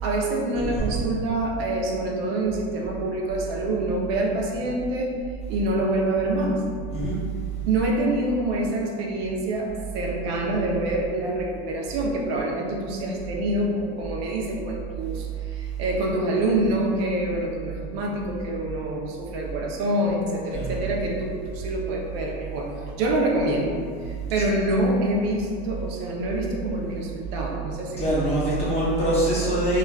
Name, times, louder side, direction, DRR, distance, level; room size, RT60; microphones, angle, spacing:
voice 1, 0.0-5.1 5.5-6.6 7.7-28.4, right 1 dB, 65° right, -1 dB, 0.6 m, -26 dB
voice 2, 28.0-29.8, right 1 dB, 20° left, -8 dB, 0.6 m, -23 dB
2.9 x 2.4 x 2.3 m, 2.1 s
supercardioid pair, 150°, 33 cm